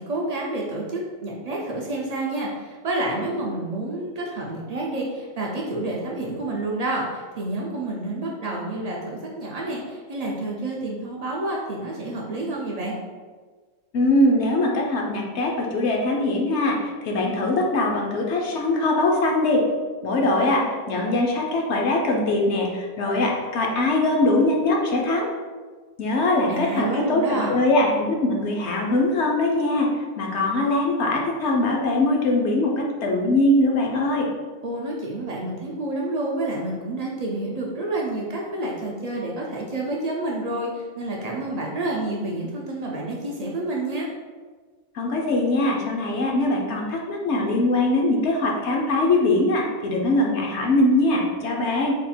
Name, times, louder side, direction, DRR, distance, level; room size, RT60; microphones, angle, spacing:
voice 1, 0.0-12.9 26.3-27.6 34.6-44.1 51.6-51.7, right 2 dB, 65° right, -3 dB, 0.4 m, -29 dB
voice 2, 13.9-16.8 17.0-19.6 20.0-25.3 26.0-29.9 30.2-34.3 44.9-51.9, left 2 dB, 65° left, 0 dB, 0.8 m, -22 dB
3.5 x 2.3 x 4.2 m, 1.4 s
omnidirectional pair, 1.3 m